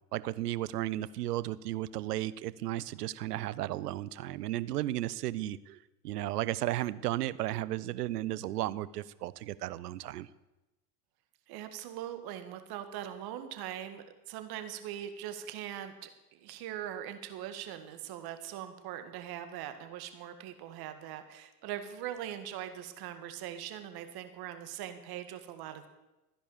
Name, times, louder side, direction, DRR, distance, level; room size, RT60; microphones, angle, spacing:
voice 1, 0.1-5.8 6.0-10.3, right 15 dB, 80° right, 18 dB, 0.7 m, -34 dB
voice 2, 11.5-25.9, right 11 dB, 50° right, 9 dB, 1.9 m, -41 dB
14.5 x 10.0 x 7.3 m, 1.0 s
hypercardioid pair, 80°, 46 cm